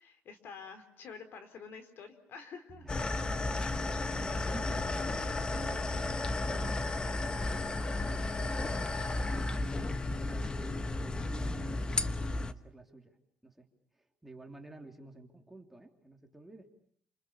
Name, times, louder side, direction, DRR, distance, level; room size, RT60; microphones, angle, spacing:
voice 1, 0.0-2.9, left 5 dB, 60° left, 9 dB, 4.0 m, -48 dB
Bass guitar, 2.7-3.4 3.8-3.9 4.2-5.8 6.6-8.2 9.0-10.1 10.4-12.3, right 5 dB, 25° right, 1.8 m, -52 dB
voice 2, 2.8-3.2 3.7-9.5 10.2-12.1 12.4-13.2 13.4-13.7 13.9-16.7, right 2 dB, 5° right, 2 dB, 3.3 m, -52 dB
sound 1, 2.9-12.5, left 2 dB, 20° left, 1.2 m, -33 dB
28.5 x 28.0 x 7.0 m, 0.62 s
cardioid pair, 145°, 4 cm